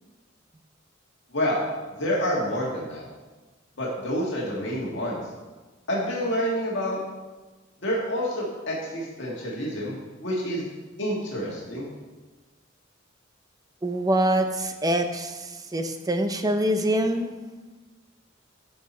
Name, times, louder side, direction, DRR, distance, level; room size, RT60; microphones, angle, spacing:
voice 1, 1.3-1.7 2.0-3.0 3.8-5.2 5.9-7.0 7.8-10.6 11.0-11.9, equal, 65° left, -4 dB, 1.9 m, -28 dB
voice 2, 13.8-17.3, right 1 dB, 20° right, 6 dB, 0.7 m, -25 dB
12.5 x 5.8 x 4.3 m, 1.3 s
head